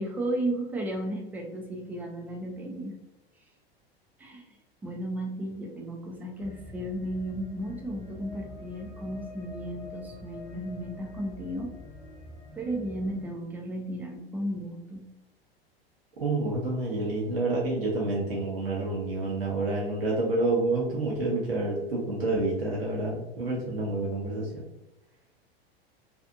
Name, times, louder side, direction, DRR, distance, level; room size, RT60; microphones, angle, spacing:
voice 1, 0.0-3.0 4.2-11.7 12.5-15.1, right 1 dB, 5° right, 1 dB, 0.3 m, -34 dB
sound 1, 6.4-13.2, left 2 dB, 10° left, 0.8 m, -45 dB
voice 2, 16.2-24.6, right 2 dB, 70° right, -4 dB, 0.8 m, -28 dB
2.6 x 2.4 x 2.4 m, 0.96 s
figure-of-eight pair, 85°, 30 cm